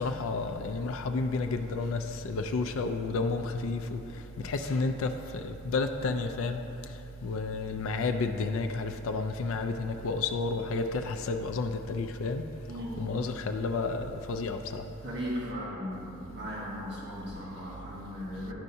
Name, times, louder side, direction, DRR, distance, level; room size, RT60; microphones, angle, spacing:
voice 1, 0.0-12.4 13.0-14.9 18.4-18.5, left 3 dB, 75° left, 7 dB, 0.4 m, -31 dB
voice 2, 12.7-13.0 15.0-18.5, equal, 60° right, -6 dB, 1.3 m, -37 dB
11.0 x 5.5 x 2.7 m, 2.9 s
head